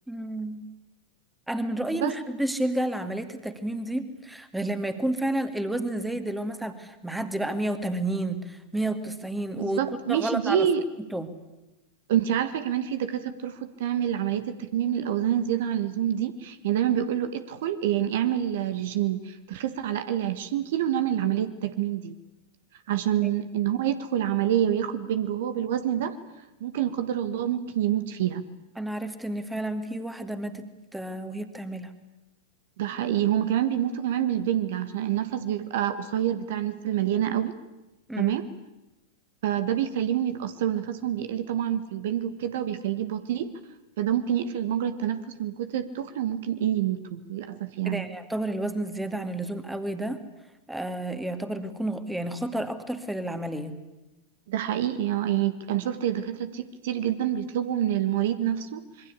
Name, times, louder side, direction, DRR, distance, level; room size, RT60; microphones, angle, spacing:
voice 1, 0.1-0.7 1.5-9.8 10.1-10.7 11.1-11.3 23.2-23.3 28.8-30.7 30.9-31.9 38.1-38.4 47.9-50.2 50.7-53.7, right 1 dB, 5° right, 9 dB, 2.3 m, -30 dB
voice 2, 9.6-10.8 12.1-22.1 22.9-26.1 26.6-28.4 32.8-37.5 38.2-38.4 39.4-43.5 44.0-48.0 54.5-58.8, right 11 dB, 55° right, 11 dB, 1.5 m, -27 dB
26.5 x 22.5 x 8.4 m, 1.0 s
figure-of-eight pair, 90°, 0 cm